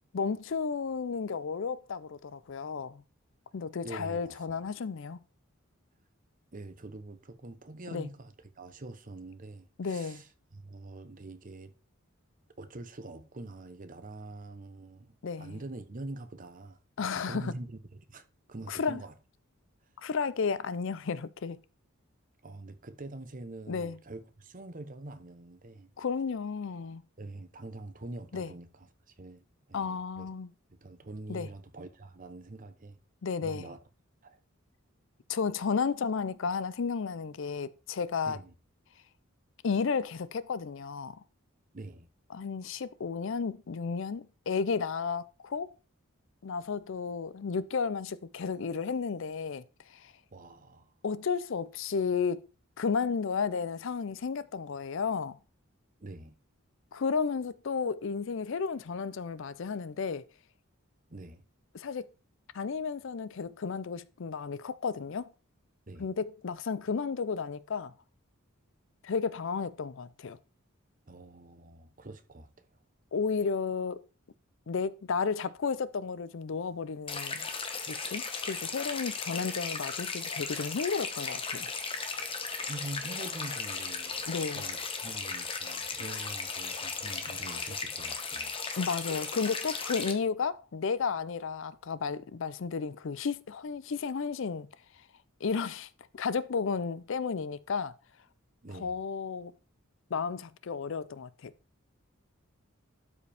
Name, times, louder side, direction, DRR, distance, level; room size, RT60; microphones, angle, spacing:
voice 1, 0.1-3.0 3.5-5.2 7.9-8.1 9.8-10.2 15.2-15.6 17.0-17.5 18.7-19.0 20.0-21.6 23.7-24.0 26.0-27.0 28.3-28.5 29.7-30.5 31.3-31.5 33.2-33.7 35.3-38.4 39.6-41.2 42.3-45.7 46.4-49.6 49.9-50.1 51.0-52.4 52.8-55.4 56.9-60.2 61.7-62.1 62.5-65.3 66.0-67.9 69.0-70.4 73.1-74.0 74.7-77.5 77.9-81.7 84.3-84.6 88.8-94.7 95.4-95.9 96.1-97.9 98.7-99.5 100.1-101.5, left 5 dB, 60° left, 0.5 m, -33 dB
voice 2, 3.8-4.6 6.5-11.7 12.6-19.1 22.4-25.9 27.2-30.3 30.8-33.0 33.4-33.8 34.2-34.4 38.3-38.5 41.7-42.1 50.3-50.9 56.0-56.4 61.1-61.4 65.9-66.1 71.1-72.6 82.6-88.5 98.6-99.0, right 2 dB, 40° right, 0.9 m, -45 dB
sound 1, 77.1-90.1, left 4 dB, 25° left, 1.1 m, -36 dB
12.0 x 5.1 x 3.5 m
head